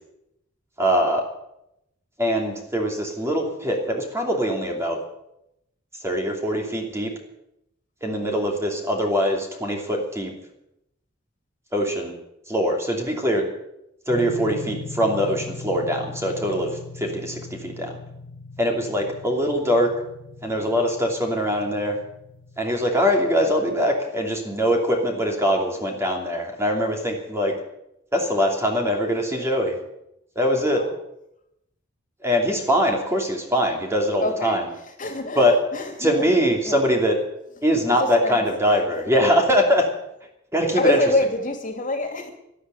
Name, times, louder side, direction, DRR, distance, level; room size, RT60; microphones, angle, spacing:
voice 1, 0.8-1.2 2.2-5.0 6.0-7.1 8.0-10.3 11.7-12.2 12.5-13.5 14.1-18.0 18.6-19.9 20.4-22.0 22.6-27.5 28.1-29.8 30.3-30.8 32.2-34.7 35.3-35.6 36.0-37.2 37.6-39.9 40.5-41.0, equal, 15° right, 1 dB, 2.9 m, -22 dB
sound 1, 14.1-23.8, left 3 dB, 65° left, 2.3 m, -39 dB
voice 2, 34.2-34.6 35.0-36.1 36.6-36.7 38.2-38.4 40.7-42.3, left 2 dB, 40° left, 4 dB, 2.8 m, -25 dB
12.5 x 11.5 x 9.3 m, 0.83 s
head